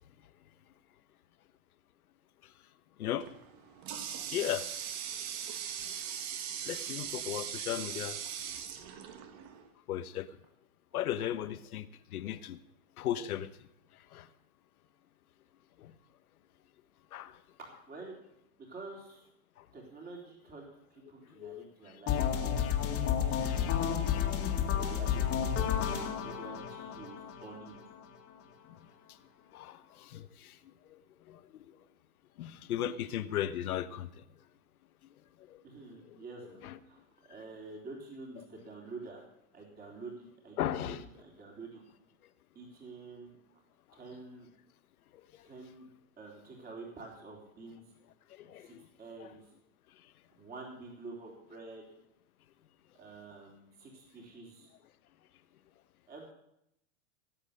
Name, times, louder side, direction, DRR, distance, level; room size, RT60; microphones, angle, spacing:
Water tap faucet, 3.2-9.7, right 9 dB, 40° right, 1.6 m, -40 dB
voice 1, 4.3-4.9 6.6-8.2 9.9-10.3 10.9-12.6 13.0-13.5 14.1-14.3 15.8-15.9 17.1-17.3 21.4-21.7 29.5-30.6 31.3-31.4 32.4-34.1 35.5-35.6 36.6-36.8 40.6-41.0 48.4-48.9, left 11 dB, 85° left, 1.1 m, -36 dB
voice 2, 18.6-19.3 19.7-22.3 22.9-24.1 24.7-25.4 25.7-27.8 35.6-39.2 39.5-41.8 42.6-43.4 43.9-44.5 45.4-45.9 46.2-47.8 48.6-49.4 50.3-51.8 52.9-54.7 56.1-56.3, right 3 dB, 20° right, 3.5 m, -48 dB
sound 1, 22.1-28.0, left 8 dB, 30° left, 2.1 m, -31 dB
18.0 x 8.1 x 6.6 m
supercardioid pair, 140°, 43 cm